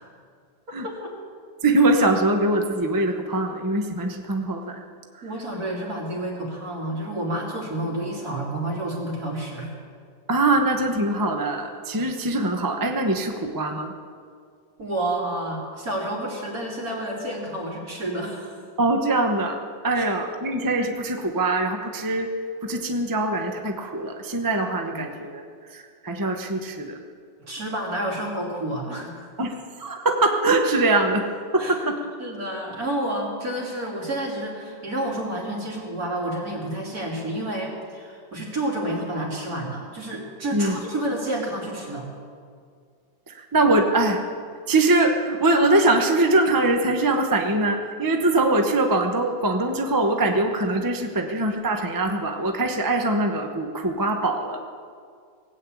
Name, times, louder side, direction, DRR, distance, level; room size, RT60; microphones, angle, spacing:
voice 1, 1.6-4.8 10.3-13.9 18.8-22.3 22.6-27.0 29.4-31.2 31.5-32.0 40.5-40.8 43.3-44.2 44.7-54.6, right 2 dB, 15° right, 4 dB, 0.7 m, -23 dB
voice 2, 5.2-9.8 14.8-18.6 20.0-20.1 24.9-25.0 27.5-29.3 31.6-31.7 32.2-42.1, right 1 dB, 50° right, -3 dB, 3.5 m, -29 dB
18.5 x 8.6 x 8.4 m, 2.1 s
omnidirectional pair, 2.0 m